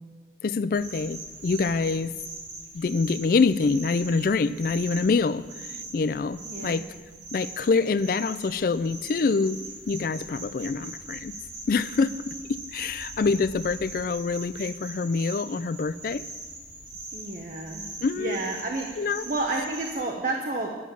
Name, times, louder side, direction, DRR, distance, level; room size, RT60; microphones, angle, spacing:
voice 1, 0.4-2.1 2.7-6.8 7.3-11.3 11.7-16.2 18.0-18.4 19.0-19.2, left 4 dB, 50° left, 16 dB, 0.3 m, -26 dB
sound 1, 0.7-20.0, right 2 dB, 80° right, 2.4 m, -41 dB
voice 2, 6.4-6.8 17.1-17.8 18.1-20.7, right 2 dB, 45° right, 0 dB, 0.9 m, -31 dB
11.5 x 7.2 x 6.8 m, 1.4 s
head